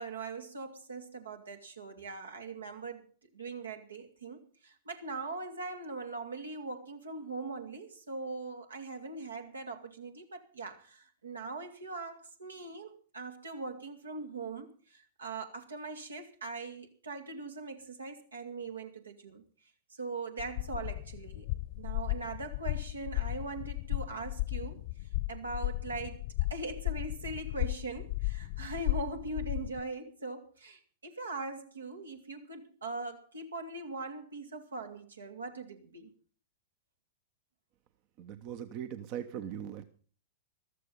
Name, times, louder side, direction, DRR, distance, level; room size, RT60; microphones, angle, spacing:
voice 1, 0.0-3.1 3.3-19.4 19.9-21.5 21.8-26.2 26.5-36.1, right 3 dB, 80° right, 5 dB, 2.5 m, -41 dB
sound 1, 20.4-29.8, left 20 dB, 50° left, 1.0 m, -35 dB
voice 2, 38.2-39.8, right 9 dB, 40° right, 11 dB, 1.0 m, -40 dB
14.5 x 13.5 x 5.5 m, 0.41 s
figure-of-eight pair, 100°, 0 cm